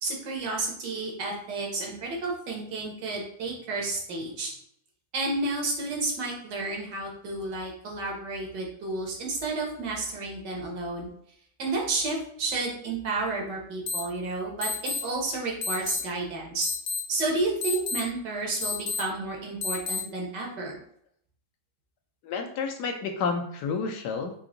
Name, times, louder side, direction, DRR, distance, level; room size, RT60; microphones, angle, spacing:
voice 1, 0.0-4.5 5.1-11.1 11.6-16.7 17.1-20.8, right 3 dB, 85° right, -1 dB, 1.8 m, -31 dB
sound 1, 13.9-14.0 14.6-15.0 15.6-16.0 16.6-17.0 17.6-18.0 18.6-19.0 19.6-20.0, left 4 dB, 45° left, 0.9 m, -29 dB
voice 2, 22.2-24.3, left 5 dB, 75° left, 4 dB, 1.3 m, -30 dB
4.7 x 2.6 x 3.8 m, 0.66 s
omnidirectional pair, 1.8 m